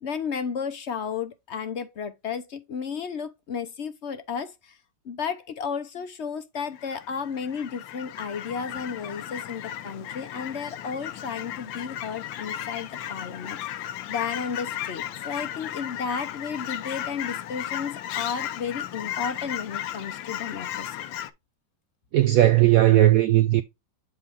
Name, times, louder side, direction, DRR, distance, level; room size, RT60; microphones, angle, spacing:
voice 1, 0.0-4.8 5.0-21.0, left 6 dB, 60° left, 0.7 m, -33 dB
Fowl / Chirp tweet, 6.6-21.3, left 11 dB, 80° left, 1.5 m, -35 dB
voice 2, 22.1-23.6, right 14 dB, 80° right, 0.7 m, -17 dB
8.4 x 4.0 x 3.5 m
omnidirectional pair, 2.1 m